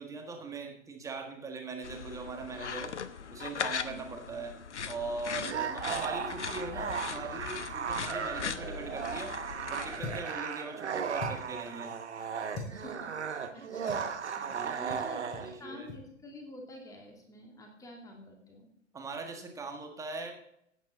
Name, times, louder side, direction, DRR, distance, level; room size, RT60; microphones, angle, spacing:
voice 1, 0.0-2.9 3.3-4.5 4.9-9.3 9.7-12.0 14.5-15.9 18.9-20.3, right 3 dB, 10° right, 3 dB, 1.5 m, -41 dB
sound 1, 1.8-10.2, left 6 dB, 65° left, 0.9 m, -39 dB
sound 2, 5.4-15.5, right 6 dB, 60° right, 1.3 m, -36 dB
sound 3, 10.0-10.4 11.2-11.6 12.5-12.8 13.9-14.1 14.9-15.1 15.3-15.5 15.8-16.0, left 3 dB, 30° left, 4.3 m, -40 dB
voice 2, 12.7-15.3 15.6-18.7, left 1 dB, 10° left, 1 dB, 2.6 m, -49 dB
16.0 x 8.9 x 4.1 m, 0.73 s
figure-of-eight pair, 120°, 38 cm